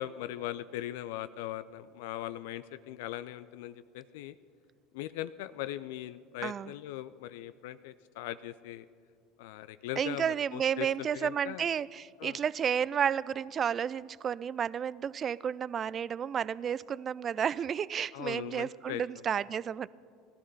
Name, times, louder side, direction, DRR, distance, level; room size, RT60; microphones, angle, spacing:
voice 1, 0.0-4.3 4.9-8.9 9.4-11.7 12.2-12.4 18.1-19.0, left 13 dB, 65° left, 14 dB, 0.4 m, -40 dB
voice 2, 6.4-6.7 10.0-19.9, right 8 dB, 35° right, 20 dB, 0.4 m, -32 dB
17.5 x 13.0 x 5.5 m, 2.2 s
figure-of-eight pair, 70°, 0 cm